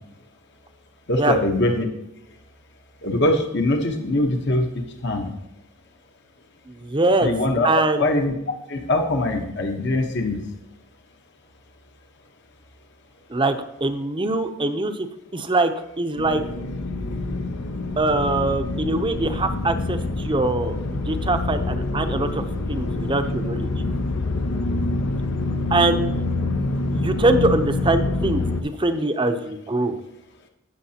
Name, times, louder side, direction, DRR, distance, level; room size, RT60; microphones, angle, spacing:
voice 1, 1.1-1.8 3.0-4.7 5.0-5.3 7.2-7.7 8.0-8.3 8.7-10.4, left 1 dB, 55° left, 4 dB, 1.0 m, -22 dB
voice 2, 6.7-7.3 7.6-8.0 13.3-15.1 15.3-16.4 18.0-22.4 22.7-23.7 25.7-26.2 26.9-30.0, right 2 dB, 25° right, 8 dB, 0.6 m, -23 dB
sound 1, 16.2-28.6, left 2 dB, 85° left, 0.8 m, -26 dB
17.0 x 6.6 x 2.9 m, 0.88 s
head